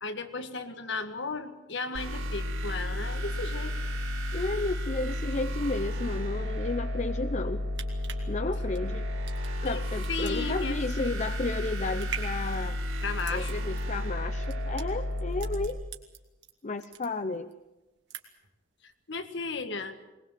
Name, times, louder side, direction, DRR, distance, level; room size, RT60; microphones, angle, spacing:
voice 1, 0.0-3.7 9.6-11.3 13.0-13.6 19.1-19.9, left 4 dB, 60° left, 9 dB, 1.8 m, -35 dB
sound 1, 1.9-15.7, left 1 dB, 85° right, 4.2 m, -32 dB
voice 2, 4.3-7.6 8.3-9.1 9.6-12.8 13.3-15.8 16.6-17.5, left 3 dB, 35° left, 10 dB, 0.7 m, -33 dB
sound 2, 7.5-16.5 16.8-17.6 17.9-18.5 18.9-19.0, right 8 dB, 55° right, 2.7 m, -44 dB
21.5 x 21.0 x 7.7 m, 1.1 s
head